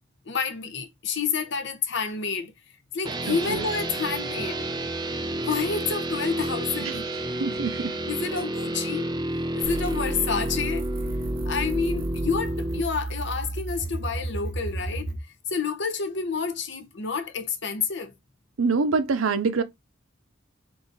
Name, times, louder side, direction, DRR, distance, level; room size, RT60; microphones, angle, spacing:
voice 1, 0.3-2.5 2.9-4.7 5.4-7.2 8.0-9.1 9.5-10.9 11.4-15.1 15.5-18.1, left 5 dB, 60° left, 0.8 m, -29 dB
sound 1, 3.0-12.8, right 1 dB, 20° right, 0.5 m, -31 dB
voice 2, 3.3-3.6 6.8-6.9 7.4-7.9 18.6-19.6, right 4 dB, 85° right, 0.6 m, -25 dB
sound 2, 9.6-15.2, right 2 dB, 65° right, 0.9 m, -32 dB
3.8 x 3.0 x 3.9 m
head